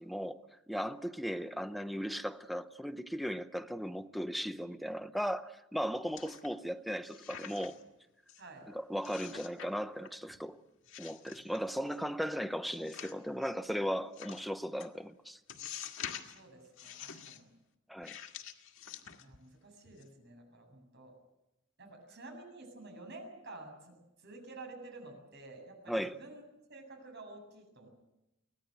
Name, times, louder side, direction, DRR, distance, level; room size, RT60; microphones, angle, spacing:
voice 1, 0.0-7.8 8.7-10.6 11.0-15.4 17.9-18.2 25.9-26.2, equal, ahead, 0.8 m, -37 dB
sound 1, 6.2-6.7 7.0-7.9 8.3-8.4 9.0-9.7 10.0-10.5 10.8-12.0 12.7-13.5 14.1-14.4 14.8-14.9 15.5-16.4 16.8-17.4 18.0-19.5 19.8-20.0, left 8 dB, 90° left, 1.8 m, -47 dB
voice 2, 8.4-8.7 16.2-17.5 19.2-21.1 21.8-24.0 24.2-26.4 26.7-27.9, right 2 dB, 60° right, 7.7 m, -50 dB
24.5 x 18.0 x 7.9 m
head